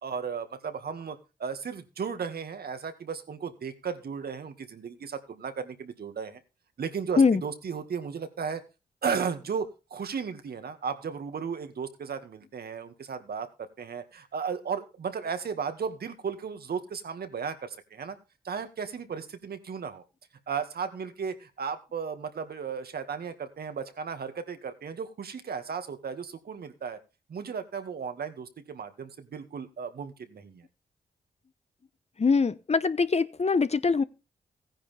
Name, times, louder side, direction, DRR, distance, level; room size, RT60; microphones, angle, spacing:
voice 1, 0.0-6.4 6.8-8.6 9.0-18.2 18.4-20.0 20.5-27.0 27.3-30.6, right 6 dB, 70° right, 2.0 m, -35 dB
voice 2, 32.2-34.0, left 4 dB, 40° left, 1.0 m, -23 dB
15.0 x 10.0 x 3.5 m
supercardioid pair, 45°, 17 cm